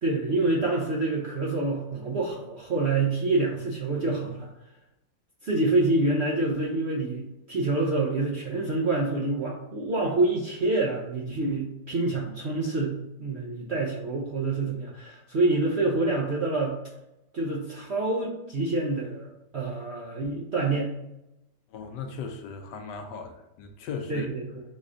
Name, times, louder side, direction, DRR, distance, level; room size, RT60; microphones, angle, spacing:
voice 1, 0.0-4.5 5.4-16.7 17.3-20.9 24.1-24.6, right 2 dB, 55° right, -3 dB, 0.7 m, -27 dB
voice 2, 21.7-24.3, left 5 dB, 75° left, 5 dB, 1.1 m, -37 dB
4.1 x 3.1 x 3.7 m, 0.90 s
omnidirectional pair, 2.0 m